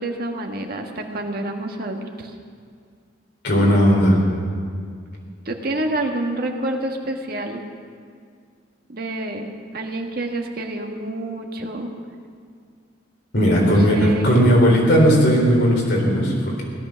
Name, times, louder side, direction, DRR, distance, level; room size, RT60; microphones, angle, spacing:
voice 1, 0.0-2.3 5.4-7.6 8.9-11.9 13.6-14.5, right 1 dB, 55° right, 3 dB, 1.5 m, -28 dB
voice 2, 3.4-4.2 13.3-16.7, equal, 60° left, -2 dB, 4.0 m, -16 dB
17.0 x 11.5 x 6.3 m, 2.1 s
head